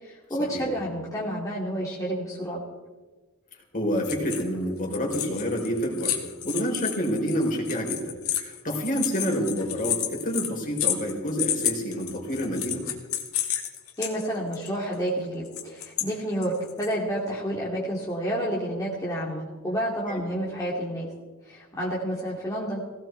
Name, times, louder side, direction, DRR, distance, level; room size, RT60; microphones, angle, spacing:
voice 1, 0.0-2.6 14.0-21.1 21.5-22.8, equal, 15° left, -6 dB, 2.7 m, -30 dB
voice 2, 3.7-6.2 6.4-8.1 8.4-12.8 20.1-20.2, equal, 40° left, 0 dB, 4.2 m, -28 dB
sound 1, 4.0-4.6 4.8-14.1 14.5-14.7 15.5-16.1 16.4-16.9, left 11 dB, 75° left, 2.4 m, -30 dB
18.0 x 17.0 x 4.6 m, 1.3 s
head